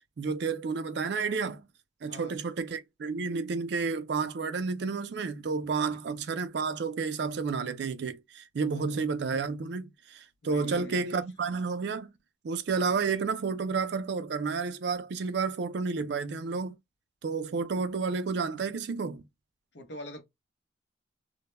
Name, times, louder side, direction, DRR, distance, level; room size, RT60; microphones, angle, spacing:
voice 1, 0.2-1.6 2.0-12.1 12.4-16.8 17.2-19.2, right 4 dB, 55° right, 0.4 m, -31 dB
voice 2, 2.1-2.4 5.8-6.0 8.7-9.0 10.4-11.2 19.7-20.2, left 1 dB, 60° left, 0.8 m, -45 dB
2.1 x 2.1 x 3.0 m
head